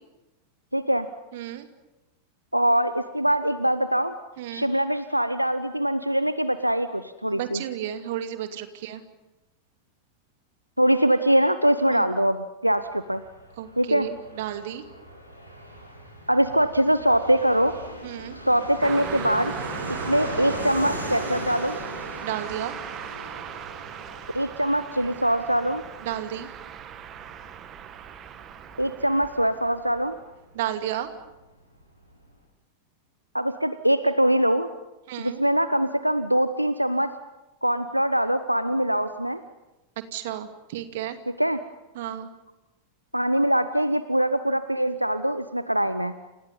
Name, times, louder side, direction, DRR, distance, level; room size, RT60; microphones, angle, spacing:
voice 1, 0.7-1.1 2.5-4.2 4.5-7.6 10.8-13.2 13.8-14.1 16.3-17.8 18.4-19.5 19.9-21.8 24.3-25.8 28.8-30.2 33.3-34.7 35.2-37.1 37.6-39.4 41.4-41.6 43.1-46.1, right 1 dB, 90° right, 12 dB, 0.9 m, -23 dB
voice 2, 1.3-1.7 4.4-4.7 7.3-9.0 11.9-12.1 13.6-14.8 18.0-18.4 22.2-22.7 26.0-26.5 30.5-31.1 35.1-35.4 40.1-41.2 41.9-42.3, right 11 dB, 55° right, 7 dB, 2.5 m, -32 dB
Fixed-wing aircraft airplane, 12.7-31.1 31.3-31.4 31.6-32.3, equal, 85° left, 7.9 m, -39 dB
Car passing by, 18.8-30.3, right 9 dB, 30° right, 1.9 m, -38 dB
29.5 x 29.0 x 5.5 m, 1.0 s
figure-of-eight pair, 90°, 0 cm